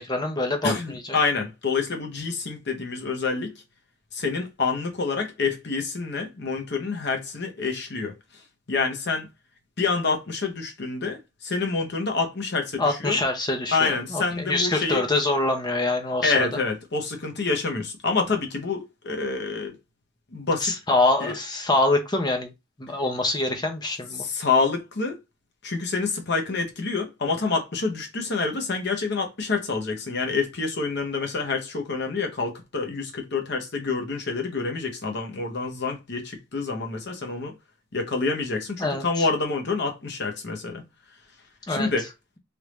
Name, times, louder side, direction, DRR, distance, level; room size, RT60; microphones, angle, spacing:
voice 1, 0.0-1.2 12.8-16.5 20.6-22.5 22.8-24.2 38.8-39.3 41.7-41.9, left 2 dB, 20° left, 0.7 m, -25 dB
voice 2, 0.6-3.5 4.1-8.4 8.7-9.3 9.8-13.2 13.7-15.0 16.2-19.8 20.3-20.7 21.2-21.3 24.2-25.1 25.6-37.5 37.9-40.8 41.7-42.1, left 4 dB, 60° left, 1.0 m, -27 dB
3.4 x 2.6 x 3.1 m
head